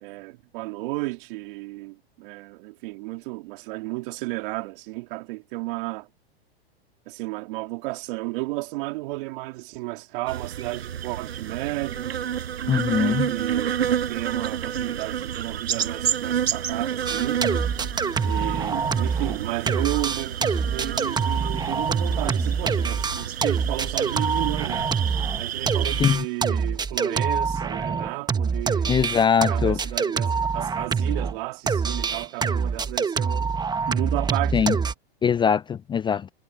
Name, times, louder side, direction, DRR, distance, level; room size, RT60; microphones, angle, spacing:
voice 1, 0.0-6.1 7.1-12.2 12.9-17.4 18.2-24.8 25.4-29.0 29.5-33.5 33.9-34.8, right 22 dB, 55° right, 2.9 m, -33 dB
sound 1, 10.3-26.2, right 9 dB, 85° right, 5.8 m, -30 dB
voice 2, 12.7-13.3 26.0-26.2 28.9-29.8 34.5-34.8 35.2-36.3, left 7 dB, 15° left, 0.5 m, -22 dB
sound 2, 17.1-19.4 19.7-31.3 31.7-34.9, right 5 dB, 15° right, 1.4 m, -25 dB
hypercardioid pair, 115°, 31 cm